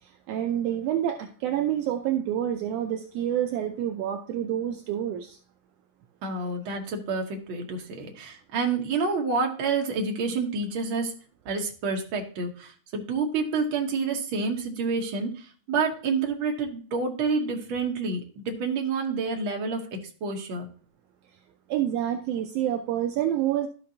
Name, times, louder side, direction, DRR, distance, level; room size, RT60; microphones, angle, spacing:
voice 1, 0.0-5.4 21.7-23.7, right 11 dB, 80° right, 5 dB, 1.4 m, -28 dB
voice 2, 6.2-11.1 11.4-19.8 20.2-20.7, right 4 dB, 55° right, 2 dB, 1.5 m, -28 dB
12.5 x 5.1 x 2.7 m, 0.41 s
omnidirectional pair, 3.3 m